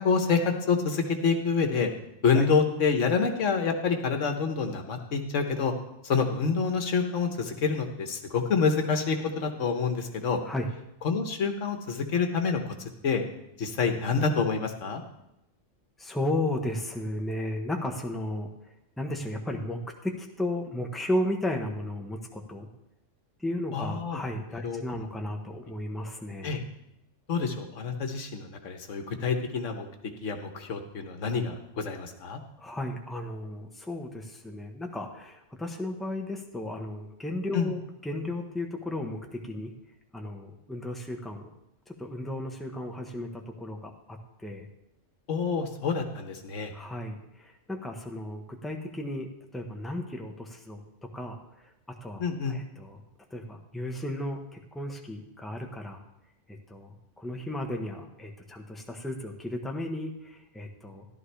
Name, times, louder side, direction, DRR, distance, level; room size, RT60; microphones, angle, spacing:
voice 1, 0.0-1.9 2.2-5.7 6.0-10.4 11.0-13.3 13.6-15.0 23.7-24.2 24.6-24.8 26.4-26.6 27.3-29.9 30.2-32.4 37.5-37.7 45.3-46.7 52.2-52.6, left 5 dB, 85° left, 5 dB, 1.4 m, -27 dB
voice 2, 16.0-18.5 19.0-22.7 23.4-26.5 32.6-39.7 40.1-41.5 41.9-44.7 46.7-50.8 51.1-51.7 52.0-53.0 53.3-56.0 56.5-61.1, left 1 dB, ahead, 2 dB, 1.1 m, -34 dB
14.0 x 11.5 x 3.4 m, 0.85 s
omnidirectional pair, 1.3 m